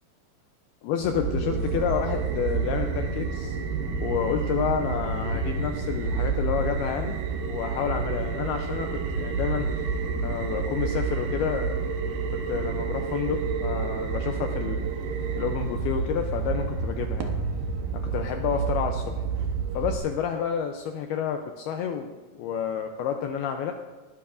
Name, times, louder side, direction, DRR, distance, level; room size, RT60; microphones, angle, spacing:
voice 1, 0.8-3.6 4.0-7.2 7.5-9.7 10.2-11.7 12.3-14.9 15.4-17.4 17.9-19.2 19.7-23.7, left 8 dB, 85° left, 5 dB, 2.2 m, -29 dB
sound 1, 1.0-20.0, right 5 dB, 80° right, 1.9 m, -29 dB
20.5 x 11.5 x 2.6 m, 1.4 s
omnidirectional pair, 5.2 m